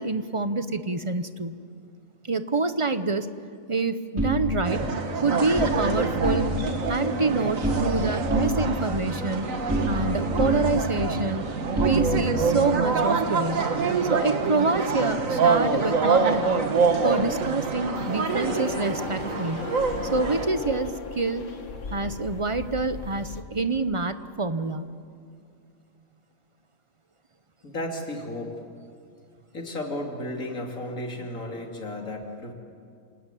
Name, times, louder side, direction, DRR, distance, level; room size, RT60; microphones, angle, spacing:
voice 1, 0.0-1.6 2.2-3.3 3.7-4.8 5.2-6.5 6.9-9.5 9.8-11.4 11.8-13.7 14.1-16.6 17.0-19.7 20.1-21.5 21.9-24.9, right 3 dB, 30° right, 11 dB, 0.7 m, -27 dB
sound 1, 4.2-5.8 6.1-6.8 7.0-8.0 8.3-10.1 10.4-12.5, equal, 10° right, 5.1 m, -28 dB
sound 2, 4.7-20.5, right 4 dB, 75° right, 1.9 m, -26 dB
sound 3, 18.0-23.4, left 3 dB, 65° left, 1.8 m, -36 dB
voice 2, 27.6-28.6 29.5-32.5, left 1 dB, 85° left, 2 dB, 3.3 m, -33 dB
28.5 x 19.0 x 9.1 m, 2.3 s
omnidirectional pair, 1.4 m